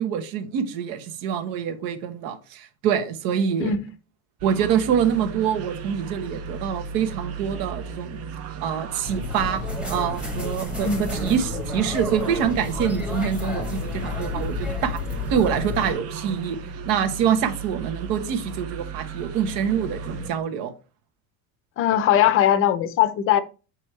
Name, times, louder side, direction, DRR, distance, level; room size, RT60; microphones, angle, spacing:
voice 1, 0.0-3.7 4.4-8.2 8.6-9.6 9.9-15.0 15.3-16.6 16.8-20.7, right 8 dB, 60° right, 1.2 m, -25 dB
sound 1, 4.4-20.3, right 5 dB, 40° right, 0.7 m, -36 dB
sound 2, 9.0-15.9, left 3 dB, 5° right, 1.1 m, -31 dB
voice 2, 10.8-11.2 21.8-23.4, left 10 dB, 30° left, 0.6 m, -20 dB
7.8 x 5.3 x 3.2 m
cardioid pair, 165°, 40 cm